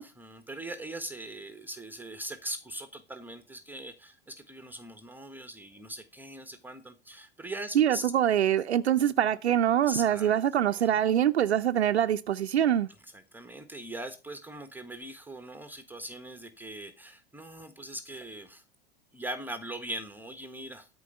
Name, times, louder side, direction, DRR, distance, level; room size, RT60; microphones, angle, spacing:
voice 1, 0.0-8.1 9.8-11.0 12.9-18.6 19.1-20.9, right 1 dB, 5° right, 1.3 m, -41 dB
voice 2, 7.8-12.9, right 10 dB, 85° right, 0.6 m, -24 dB
13.5 x 4.7 x 6.6 m
hypercardioid pair, 95°, 32 cm